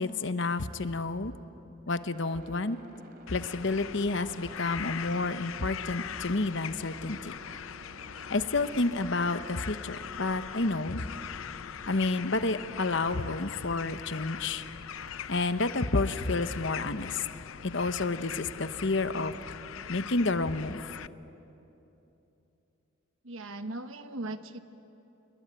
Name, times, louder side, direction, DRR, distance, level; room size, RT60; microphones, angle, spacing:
voice 1, 0.0-1.3 1.9-2.8 3.3-7.3 8.3-11.0 11.9-14.6 15.3-17.2 17.6-19.4 19.9-20.8, left 3 dB, 65° left, 11 dB, 1.0 m, -30 dB
sound 1, 1.9-14.3 14.9-17.0, right 1 dB, 50° right, 3.0 m, -54 dB
sound 2, 3.3-21.1, left 8 dB, 85° left, 0.6 m, -41 dB
voice 2, 23.2-24.6, right 2 dB, 85° right, 8 dB, 1.4 m, -38 dB
29.0 x 23.0 x 9.0 m, 3.0 s
head